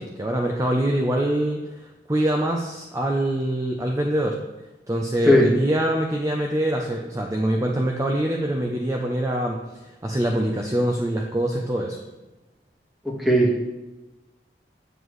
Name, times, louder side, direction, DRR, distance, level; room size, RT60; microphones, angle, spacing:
voice 1, 0.0-4.4 4.9-12.0, right 1 dB, 20° right, 1 dB, 0.5 m, -24 dB
voice 2, 13.2-13.6, equal, ahead, -4 dB, 1.6 m, -16 dB
8.1 x 7.2 x 3.1 m, 1.1 s
head